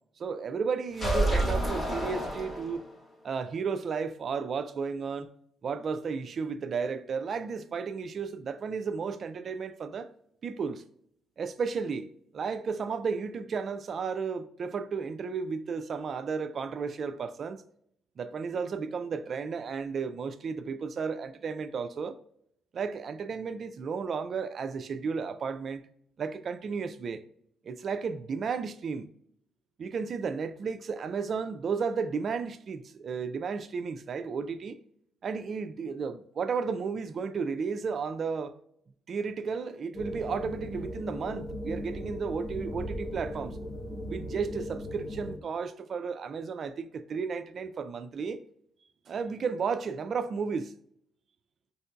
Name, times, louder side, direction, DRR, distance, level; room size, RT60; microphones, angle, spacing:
voice 1, 0.2-2.8 3.2-5.3 5.6-10.1 10.4-10.8 11.4-17.6 18.2-22.2 22.7-25.9 26.2-27.2 27.6-29.1 29.8-34.8 35.2-38.5 39.1-43.6 44.1-48.4 49.1-50.7, right 5 dB, 50° right, 0.3 m, -33 dB
sound 1, 0.9-3.0, right 1 dB, 25° left, 1.1 m, -29 dB
sound 2, 39.9-45.4, equal, 45° left, 0.7 m, -38 dB
4.4 x 2.6 x 2.2 m
cardioid pair, 90°, 0 cm